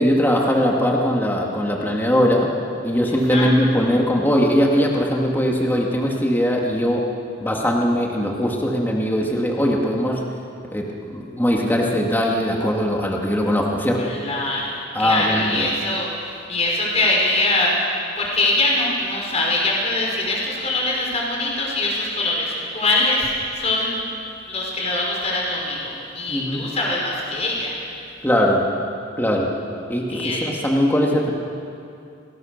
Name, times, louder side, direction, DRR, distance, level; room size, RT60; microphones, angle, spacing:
voice 1, 0.0-2.5 2.8-7.0 7.4-10.2 10.7-14.1 14.9-15.7 26.3-26.6 28.2-28.7 29.2-29.5 29.9-31.3, equal, 10° left, -1 dB, 2.1 m, -20 dB
voice 2, 14.0-17.7 18.2-24.0 24.5-27.8 30.1-30.4, left 2 dB, 35° left, -3 dB, 5.7 m, -23 dB
28.5 x 19.5 x 6.7 m, 2.5 s
head